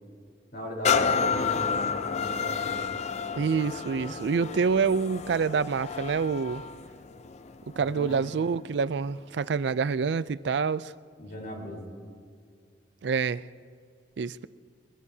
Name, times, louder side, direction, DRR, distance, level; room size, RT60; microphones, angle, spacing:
voice 1, 0.5-1.8 2.2-2.9 7.8-8.1 11.2-11.9, equal, 50° left, 3.9 m, -38 dB
sound 1, 0.9-8.5 9.0-9.1, left 6 dB, 35° left, 0.5 m, -30 dB
voice 2, 3.4-6.6 7.8-10.9 13.0-13.4 14.2-14.5, right 5 dB, 65° right, 0.4 m, -27 dB
22.5 x 22.0 x 2.8 m
head